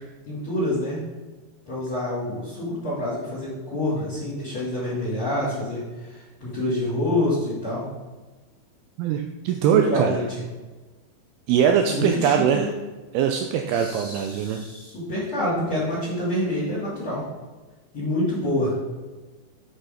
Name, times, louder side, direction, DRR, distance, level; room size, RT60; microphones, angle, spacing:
voice 1, 0.3-1.0 1.7-6.1 6.4-7.8 9.6-10.4 11.9-12.7 13.7-17.2 17.9-18.7, left 1 dB, 35° left, -8 dB, 2.8 m, -27 dB
voice 2, 9.0-10.2 11.5-12.7 13.1-14.6, right 8 dB, 85° right, 4 dB, 2.2 m, -22 dB
8.4 x 5.6 x 5.1 m, 1.2 s
omnidirectional pair, 5.1 m